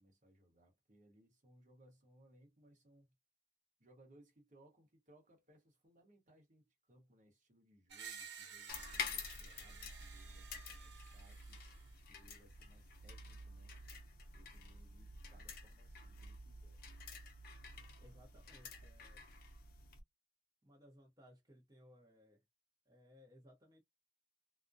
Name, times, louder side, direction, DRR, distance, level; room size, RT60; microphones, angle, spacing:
voice 1, 0.0-3.1 3.8-11.6 12.1-13.7 14.3-16.8, right 1 dB, 45° right, 1.0 m, -67 dB
Screech, 7.9-11.9, right 7 dB, 65° right, 0.6 m, -54 dB
sound 1, 8.7-20.0, left 4 dB, 50° left, 0.6 m, -49 dB
voice 2, 18.0-19.3 20.6-22.4 22.9-23.8, equal, 20° right, 0.7 m, -63 dB
2.3 x 2.1 x 2.6 m
head